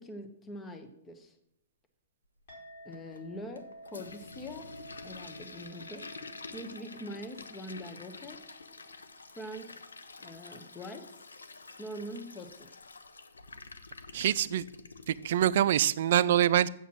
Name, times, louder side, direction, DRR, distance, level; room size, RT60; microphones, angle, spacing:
voice 1, 0.0-1.4 2.8-4.7 5.0-6.1 6.5-8.4 9.3-9.8 10.2-11.1 11.8-12.8, equal, 15° left, 7 dB, 1.1 m, -43 dB
Chink clink, 2.5-11.2, right 1 dB, 60° left, 4.2 m, -54 dB
Toilet flush, 2.9-15.6, left 4 dB, 90° left, 0.7 m, -48 dB
voice 2, 14.1-14.6 15.1-16.7, right 11 dB, 60° right, 18 dB, 0.4 m, -25 dB
7.4 x 7.0 x 6.2 m, 0.78 s
hypercardioid pair, 125°, 0 cm